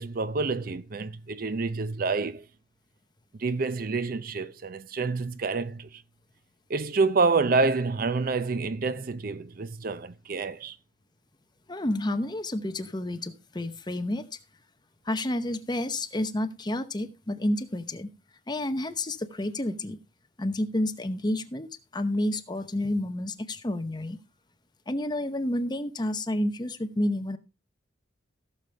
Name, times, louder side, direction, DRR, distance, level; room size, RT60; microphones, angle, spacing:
voice 1, 0.0-2.4 3.4-6.0 6.7-10.8, right 4 dB, 50° right, 0.5 m, -28 dB
voice 2, 11.7-14.3 15.1-18.1 18.5-20.0 20.4-21.7 21.9-24.2 24.9-27.4, left 1 dB, 25° left, 0.8 m, -30 dB
16.0 x 6.8 x 3.3 m
head